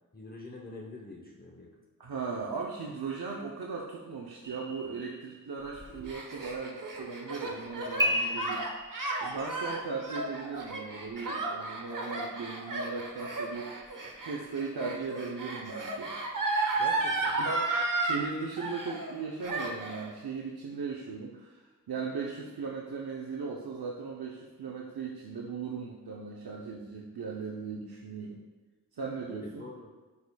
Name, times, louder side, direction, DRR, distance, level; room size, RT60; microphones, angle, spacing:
voice 1, 0.1-1.7 16.8-17.4 29.3-29.9, left 2 dB, 25° left, -1 dB, 0.8 m, -45 dB
voice 2, 2.0-8.7 9.2-13.9 14.2-16.2 17.4-28.4 29.0-29.7, right 4 dB, 80° right, -2 dB, 0.7 m, -38 dB
sound 1, 4.4-5.7 8.0-9.5, equal, 10° right, 0.8 m, -33 dB
Gasp, 5.8-18.2 18.6-19.2 19.4-20.1, right 3 dB, 60° right, 1.0 m, -33 dB
9.4 x 4.9 x 2.2 m, 1.3 s
wide cardioid pair, 50°, 37 cm